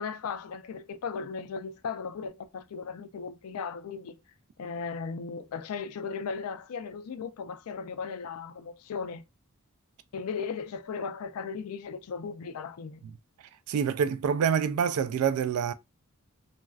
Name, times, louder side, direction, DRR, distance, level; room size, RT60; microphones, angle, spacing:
voice 1, 0.0-4.2 4.6-9.2 10.1-13.1, left 5 dB, 85° left, 0.4 m, -36 dB
voice 2, 13.7-15.7, right 7 dB, 90° right, 0.3 m, -26 dB
3.1 x 2.4 x 2.4 m
head